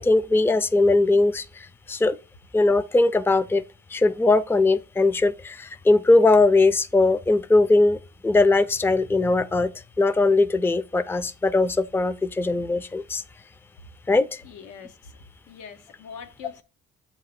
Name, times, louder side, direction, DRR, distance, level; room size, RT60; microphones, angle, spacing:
voice 1, 0.0-2.2 2.5-3.6 3.9-9.7 10.0-13.2 14.1-14.4, left 2 dB, 10° left, 0.4 m, -20 dB
voice 2, 14.4-15.1 15.5-16.6, left 6 dB, 90° left, 1.0 m, -42 dB
7.7 x 2.9 x 5.8 m
cardioid pair, 90°, 30 cm